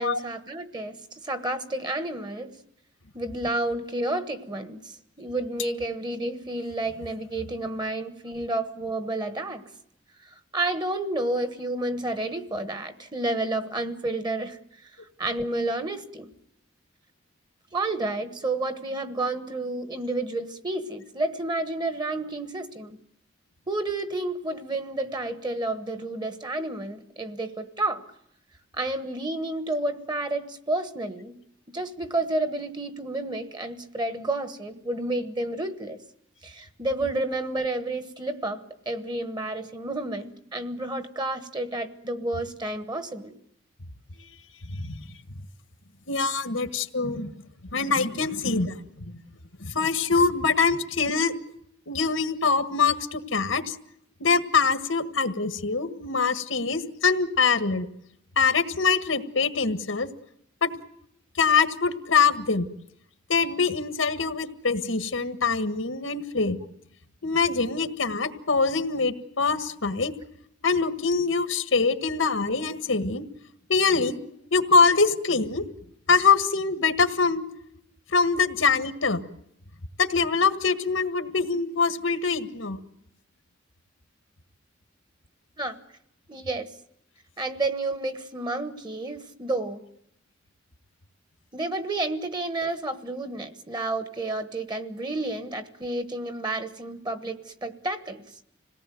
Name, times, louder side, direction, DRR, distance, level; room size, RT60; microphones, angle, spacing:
voice 1, 0.0-2.5 3.1-9.6 10.2-14.6 15.2-16.3 17.7-23.0 23.7-28.0 28.7-31.3 31.7-36.0 36.4-43.4 48.3-48.4 85.6-85.8 86.3-86.7 87.4-89.8 91.5-98.2, right 2 dB, 20° right, 11 dB, 1.3 m, -30 dB
voice 2, 44.7-45.0 46.1-47.3 47.7-49.2 49.6-51.3 51.9-53.8 54.2-57.9 58.4-60.1 60.6-60.7 61.4-62.7 63.3-66.6 67.2-70.1 70.6-73.2 73.7-74.2 74.5-75.7 76.1-77.5 78.1-79.2 80.0-82.8, left 4 dB, 80° left, 10 dB, 1.6 m, -24 dB
26.5 x 18.0 x 9.2 m, 0.75 s
head